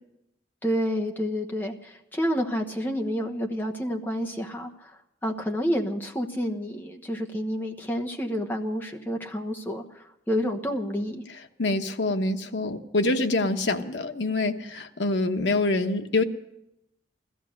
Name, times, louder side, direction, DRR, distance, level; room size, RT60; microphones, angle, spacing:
voice 1, 0.6-11.2, equal, 10° left, 1 dB, 1.1 m, -29 dB
voice 2, 11.6-16.2, left 2 dB, 85° left, 6 dB, 1.0 m, -25 dB
16.0 x 13.5 x 6.5 m, 0.86 s
head